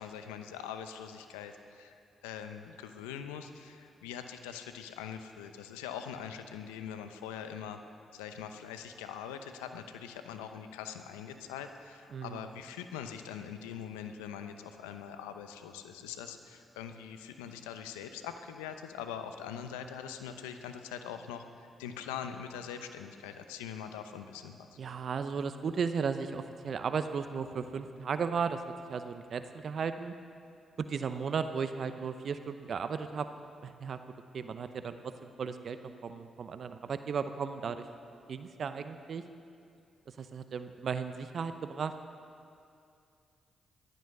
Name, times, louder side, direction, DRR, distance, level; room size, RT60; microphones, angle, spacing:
voice 1, 0.0-7.8 8.1-21.4 21.8-24.7, left 8 dB, 85° left, 8 dB, 0.8 m, -43 dB
voice 2, 12.1-12.5 24.8-28.6 28.9-30.1 30.8-33.3 33.6-34.0 34.3-35.8 36.0-37.9 38.3-39.2 40.1-41.9, right 6 dB, 60° right, 10 dB, 0.7 m, -35 dB
15.0 x 12.5 x 6.7 m, 2.5 s
hypercardioid pair, 40°, 0 cm